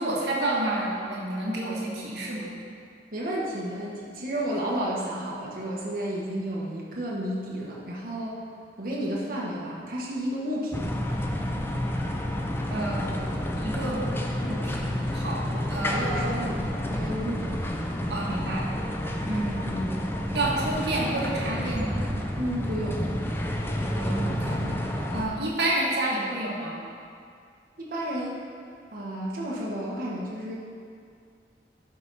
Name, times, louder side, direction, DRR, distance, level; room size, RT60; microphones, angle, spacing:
voice 1, 0.0-2.5 12.7-14.0 14.4-14.8 15.1-15.4 15.7-16.4 18.1-18.6 19.3-19.9 20.3-22.0 23.9-24.6 25.1-26.8, right 1 dB, 70° right, -5 dB, 1.5 m, -29 dB
voice 2, 3.1-8.3 8.8-10.9 15.5-17.6 22.4-23.0 27.8-28.4 28.9-30.6, right 1 dB, 50° right, -5 dB, 1.2 m, -32 dB
sound 1, 10.7-25.2, left 1 dB, 15° left, 0.6 m, -30 dB
12.0 x 5.3 x 4.1 m, 2.3 s
head